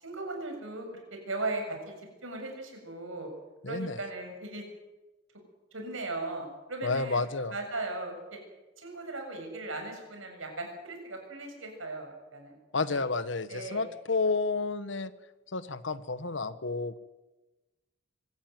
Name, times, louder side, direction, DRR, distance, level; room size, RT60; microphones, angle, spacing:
voice 1, 0.0-1.9 2.2-3.3 3.7-4.6 5.7-7.2 7.5-8.4 8.8-12.6 12.9-13.0 13.5-13.9, right 2 dB, 90° right, 3 dB, 7.0 m, -37 dB
voice 2, 3.6-4.0 6.8-7.5 12.7-15.1 15.5-17.0, left 3 dB, 70° left, 14 dB, 1.2 m, -30 dB
25.0 x 14.0 x 9.4 m, 1.1 s
head